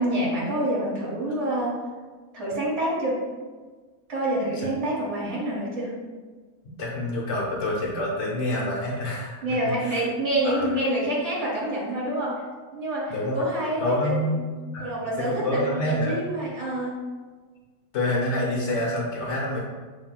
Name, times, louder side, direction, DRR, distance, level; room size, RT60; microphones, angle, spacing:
voice 1, 0.0-1.8 2.3-3.2 4.1-5.9 9.4-12.4 12.7-14.5 14.8-17.0, right 1 dB, 65° right, -5 dB, 1.3 m, -27 dB
voice 2, 6.8-9.4 9.8-10.0 10.4-10.8 13.1-13.4 13.8-14.4 14.7-14.9 15.3-16.1 17.9-19.6, left 1 dB, 70° left, -4 dB, 1.1 m, -27 dB
7.1 x 2.7 x 2.2 m, 1.4 s
omnidirectional pair, 1.3 m